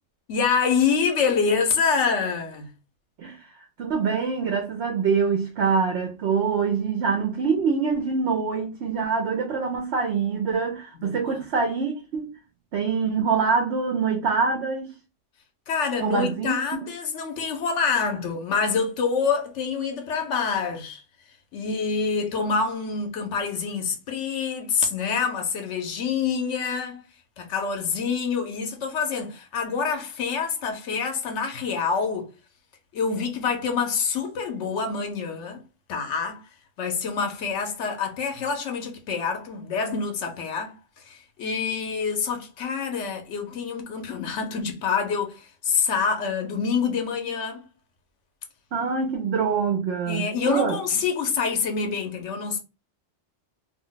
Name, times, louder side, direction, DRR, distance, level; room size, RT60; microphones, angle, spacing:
voice 1, 0.3-2.7 11.0-11.4 15.7-21.0 21.5-27.0 27.4-32.3 32.9-35.6 35.9-36.4 36.8-47.7 50.1-52.6, left 5 dB, 90° left, 1.0 m, -26 dB
voice 2, 3.8-12.3 12.7-14.9 16.0-16.5 48.7-50.8, right 5 dB, 70° right, 0.9 m, -25 dB
2.6 x 2.1 x 3.8 m
omnidirectional pair, 1.2 m